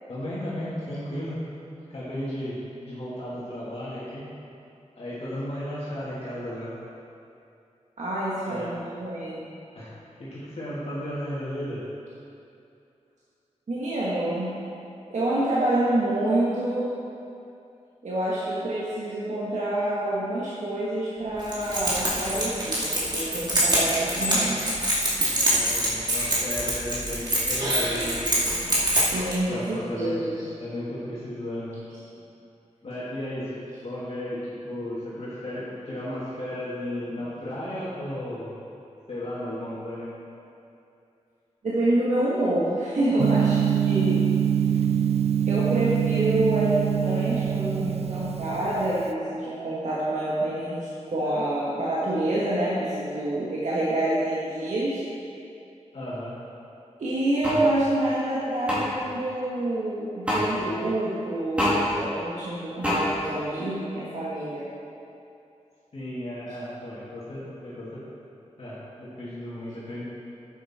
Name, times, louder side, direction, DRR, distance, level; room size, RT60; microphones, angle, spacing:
voice 1, 0.1-1.4 1.9-4.2 5.0-6.8 8.4-8.7 9.7-9.9 10.2-11.8 25.4-28.2 29.5-30.2 30.6-31.7 32.8-38.6 39.1-40.1 43.3-43.4 55.9-56.3 65.9-68.0 68.6-70.0, left 1 dB, 55° left, -9 dB, 2.3 m, -34 dB
voice 2, 8.0-9.5 13.7-14.6 15.1-16.9 18.0-24.7 29.0-30.5 41.6-44.3 45.5-55.0 57.0-64.6, right 1 dB, 80° right, -8 dB, 1.6 m, -27 dB
Keys jangling, 21.4-29.3, right 1 dB, 35° right, 2.3 m, -25 dB
Gong, 43.2-49.1, right 9 dB, 60° right, 0.4 m, -24 dB
sound 1, 57.4-57.6 58.7-58.8 60.3-60.4 61.6-61.8 62.8-63.0, left 1 dB, 10° right, 2.6 m, -24 dB
11.0 x 8.2 x 4.4 m, 2.6 s
wide cardioid pair, 120°, 12 cm